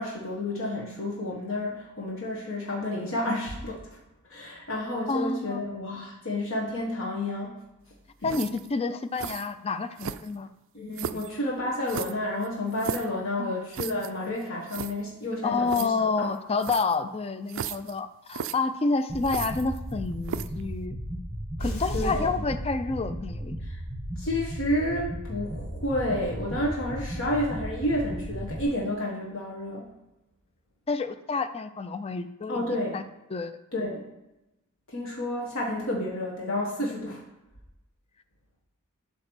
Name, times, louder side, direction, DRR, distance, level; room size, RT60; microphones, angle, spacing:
voice 1, 0.0-4.0 4.3-7.6 8.2-8.3 10.7-16.3 21.9-22.4 23.6-23.8 24.2-29.9 32.5-33.0 33.7-34.1 34.9-37.2, left 1 dB, 65° left, -3 dB, 1.3 m, -30 dB
voice 2, 5.1-5.6 8.2-10.5 11.1-11.2 13.4-13.6 15.4-21.0 21.6-23.6 30.9-32.6 32.9-33.0 33.3-33.5, left 4 dB, 30° left, 11 dB, 0.4 m, -29 dB
sound 1, 8.2-8.7 9.2-9.5 10.0-10.5 10.9-11.3 11.9-13.1 13.7-14.1 14.4-14.5 14.7-14.9 15.7-15.9 16.6-17.0 17.5-17.9 18.3-18.5 19.2-19.9 20.2-20.6, right 8 dB, 65° right, 0.4 m, -35 dB
sound 2, 19.1-28.6, equal, ahead, 1.2 m, -36 dB
sound 3, 21.6-23.5, right 1 dB, 85° left, 1.8 m, -36 dB
8.2 x 2.9 x 6.2 m, 0.96 s
head